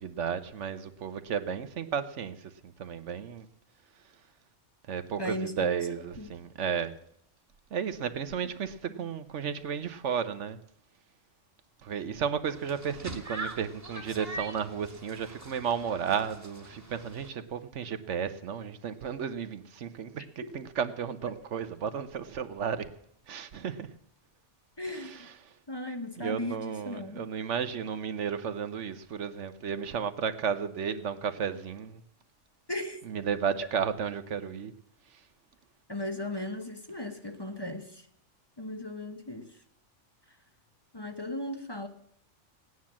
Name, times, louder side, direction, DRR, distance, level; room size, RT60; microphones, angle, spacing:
voice 1, 0.0-3.5 4.9-6.9 7.7-10.6 11.8-20.2 20.5-22.9 23.3-23.9 25.0-25.1 26.2-32.0 33.1-34.7, right 7 dB, 75° right, 1.2 m, -33 dB
voice 2, 5.2-5.7 6.2-6.3 8.9-9.1 20.4-20.5 24.8-25.3 25.7-27.3 32.7-33.0 35.9-38.1 38.6-39.6 40.9-41.9, left 1 dB, 20° left, 1.0 m, -37 dB
sound 1, 12.4-17.3, right 2 dB, 15° right, 1.7 m, -43 dB
16.5 x 9.6 x 7.4 m
omnidirectional pair, 1.2 m